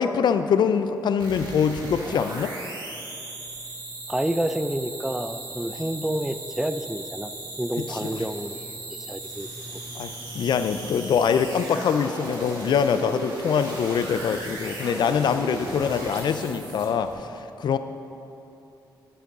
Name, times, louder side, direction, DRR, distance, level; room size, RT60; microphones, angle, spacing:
voice 1, 0.0-2.5 7.8-8.2 9.9-17.8, left 7 dB, 65° left, 10 dB, 0.4 m, -24 dB
sound 1, 1.2-17.1, right 2 dB, 70° right, 2.2 m, -37 dB
voice 2, 4.1-7.3 7.6-8.8 9.1-9.5, right 1 dB, 5° right, 10 dB, 0.4 m, -29 dB
9.9 x 9.4 x 3.6 m, 2.8 s
cardioid pair, 90°, 8 cm